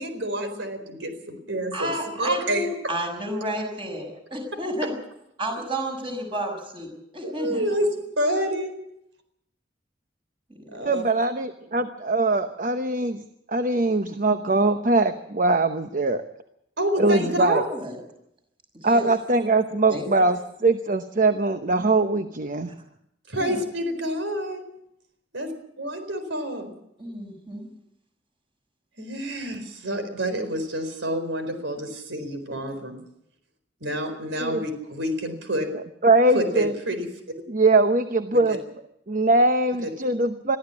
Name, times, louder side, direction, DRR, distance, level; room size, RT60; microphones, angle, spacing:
voice 1, 0.0-1.9 2.2-2.7 7.2-8.8 10.7-11.0 16.8-17.6 23.3-24.6 25.3-25.5 25.8-26.8 29.0-33.0 33.8-35.7 36.3-37.1 38.5-38.6 39.8-39.9, equal, 80° right, 8 dB, 4.4 m, -28 dB
voice 2, 1.7-4.9 5.4-7.7 10.5-10.9 17.1-18.0 18.7-19.1 19.9-20.2 23.4-23.6 27.0-27.7, equal, 30° right, 3 dB, 6.2 m, -32 dB
voice 3, 10.8-13.2 13.5-16.2 17.0-17.6 18.8-22.7 34.4-34.6 36.0-36.7 37.5-38.6 39.1-40.6, right 2 dB, 45° right, 8 dB, 0.9 m, -22 dB
22.5 x 14.0 x 8.4 m, 0.78 s
head